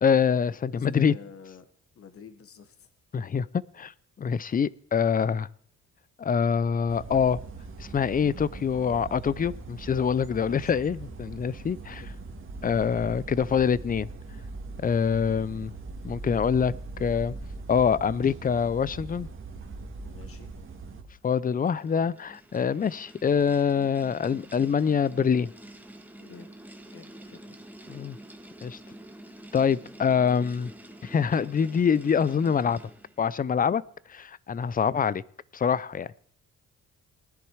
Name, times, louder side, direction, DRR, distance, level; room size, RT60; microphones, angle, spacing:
voice 1, 0.0-1.1 3.1-3.5 3.7-3.9 4.2-5.5 6.2-7.4 7.8-12.0 12.6-14.1 14.8-15.7 16.0-17.3 17.7-19.3 21.2-25.5 27.9-28.2 28.6-28.8 29.5-30.7 31.0-32.8 33.2-33.8 34.1-35.2 35.5-36.2, left 7 dB, 30° left, 21 dB, 0.5 m, -25 dB
voice 2, 0.7-1.7 2.0-2.9 10.3-10.8 11.9-12.1 20.0-20.5 26.2-26.5 26.9-27.6, left 6 dB, 50° left, 9 dB, 1.6 m, -48 dB
sound 1, 6.9-21.0, right 3 dB, 40° right, 2.0 m, -41 dB
sound 2, 21.1-33.3, right 1 dB, 5° right, 1.4 m, -48 dB
19.5 x 10.5 x 4.8 m, 0.62 s
cardioid pair, 90°, 30 cm